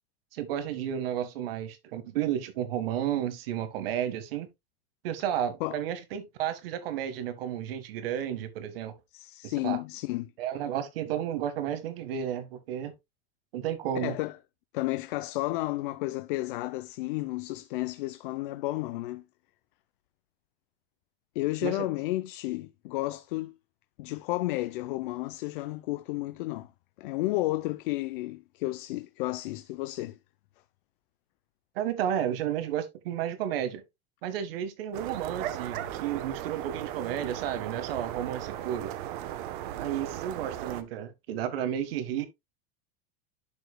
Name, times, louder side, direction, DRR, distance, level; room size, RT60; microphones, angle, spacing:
voice 1, 0.3-4.5 5.0-8.9 9.4-9.8 10.4-12.9 13.5-14.1 21.6-21.9 31.7-33.8 34.2-38.9 39.8-42.3, right 10 dB, 75° right, 1.5 m, -32 dB
voice 2, 9.1-10.3 14.0-14.4 14.7-19.2 21.3-23.5 24.0-26.7 27.0-30.2, left 18 dB, 60° left, 0.6 m, -32 dB
sound 1, 34.9-40.8, right 11 dB, 55° right, 1.0 m, -37 dB
11.5 x 5.0 x 2.2 m
supercardioid pair, 175°, 29 cm